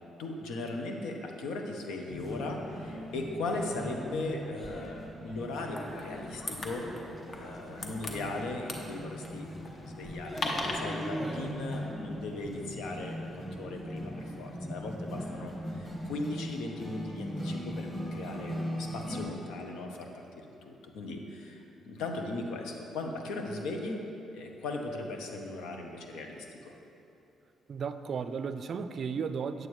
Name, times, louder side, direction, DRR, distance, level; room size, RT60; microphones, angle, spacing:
voice 1, 0.2-6.8 7.4-13.2 13.5-20.1 20.6-24.0 24.3-26.4, left 2 dB, 90° left, 2 dB, 0.8 m, -38 dB
sound 1, 2.1-19.2, equal, 5° left, 1.7 m, -39 dB
sound 2, 5.8-10.8, left 2 dB, 45° left, 0.9 m, -39 dB
voice 2, 27.7-29.7, right 6 dB, 55° right, 11 dB, 0.4 m, -34 dB
8.8 x 7.8 x 3.2 m, 2.8 s
cardioid pair, 90°, 0 cm